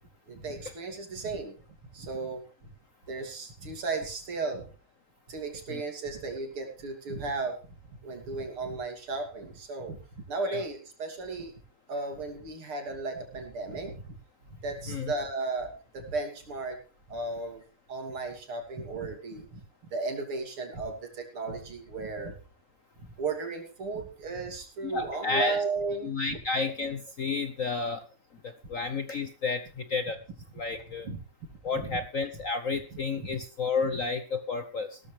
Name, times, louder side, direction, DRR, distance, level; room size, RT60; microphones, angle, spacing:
voice 1, 0.3-1.5 1.9-2.7 3.1-4.7 5.3-7.6 8.0-10.0 10.3-11.5 11.9-14.1 14.5-16.8 17.1-17.6 17.9-19.6 19.9-22.4 23.2-26.4 31.0-31.2 31.8-32.0 33.2-33.3 33.9-34.0, right 3 dB, 75° right, 4 dB, 3.7 m, -35 dB
voice 2, 24.8-25.6 26.0-28.0 28.4-30.2 30.6-31.1 31.6-35.0, left 4 dB, 55° left, 9 dB, 0.9 m, -31 dB
16.5 x 13.5 x 3.3 m, 0.36 s
omnidirectional pair, 2.4 m